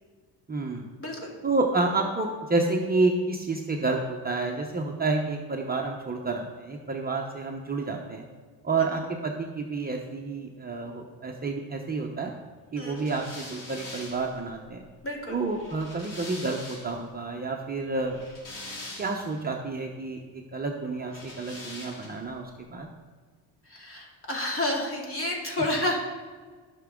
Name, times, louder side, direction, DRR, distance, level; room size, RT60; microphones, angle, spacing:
voice 1, 0.5-0.9 1.4-8.2 8.6-12.3 12.7-14.8 15.3-18.2 19.0-22.9, right 3 dB, 20° right, 1 dB, 0.9 m, -29 dB
voice 2, 1.0-1.3 12.8-13.0 15.0-15.4 23.7-26.0, left 1 dB, 30° left, -1 dB, 2.6 m, -30 dB
sound 1, 13.0-17.1 18.0-19.4 21.1-22.3, left 2 dB, 45° left, 3.4 m, -43 dB
15.5 x 6.0 x 3.7 m, 1.5 s
cardioid pair, 105°, 44 cm